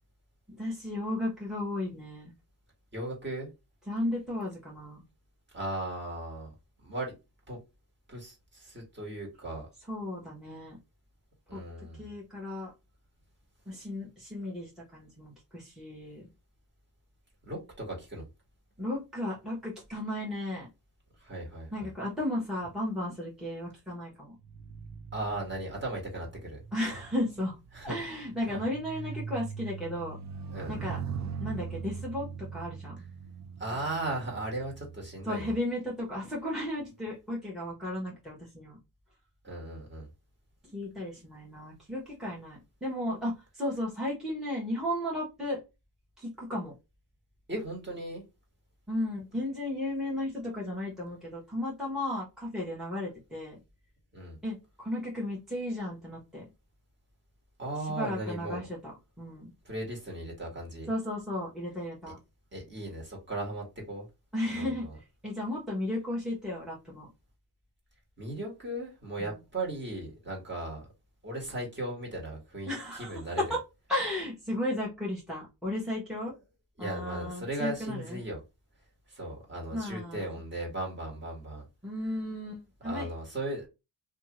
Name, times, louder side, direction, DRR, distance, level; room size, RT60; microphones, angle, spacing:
voice 1, 0.5-2.3 3.9-5.0 9.9-10.8 11.5-11.6 12.0-12.7 13.7-16.3 18.8-20.7 21.7-24.4 26.7-30.2 30.7-33.0 35.2-38.8 40.6-45.6 46.2-46.7 48.9-53.6 54.4-56.4 57.8-58.9 59.2-59.5 60.9-62.2 64.3-64.9 65.2-67.1 69.2-69.4 72.7-73.2 73.5-73.6 73.9-76.3 76.8-78.2 79.7-80.4 81.8-83.1, left 1 dB, ahead, 1.1 m, -34 dB
voice 2, 2.9-3.5 5.5-6.5 6.8-7.1 7.5-7.6 8.1-9.7 11.5-12.1 17.4-18.3 21.2-21.9 25.1-26.6 27.7-28.0 28.5-28.6 30.5-30.8 33.6-35.5 39.4-40.1 47.5-48.2 54.1-54.4 57.6-58.7 59.6-60.9 62.5-64.1 64.6-64.9 68.2-70.8 71.2-72.7 73.0-73.4 76.8-78.4 79.1-81.6 82.8-83.7, right 1 dB, 25° right, 1.5 m, -37 dB
sound 1, 24.4-36.0 36.8-37.1, right 6 dB, 40° right, 0.5 m, -41 dB
2.8 x 2.4 x 3.0 m
cardioid pair, 100°, 43 cm